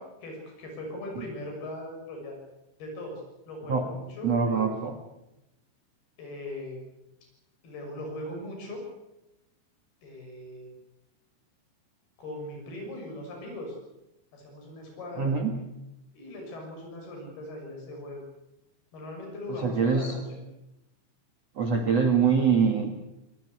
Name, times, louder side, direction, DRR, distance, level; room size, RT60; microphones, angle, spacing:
voice 1, 0.0-2.4 2.8-4.7 6.2-6.8 7.6-8.8 10.0-10.7 12.2-13.8 14.3-15.4 16.1-18.2 18.9-20.4, left 1 dB, 55° left, 1 dB, 8.4 m, -39 dB
voice 2, 4.2-5.0 15.2-15.5 19.6-20.1 21.6-23.0, right 5 dB, 55° right, 5 dB, 2.0 m, -24 dB
25.5 x 20.5 x 8.3 m, 0.91 s
omnidirectional pair, 5.3 m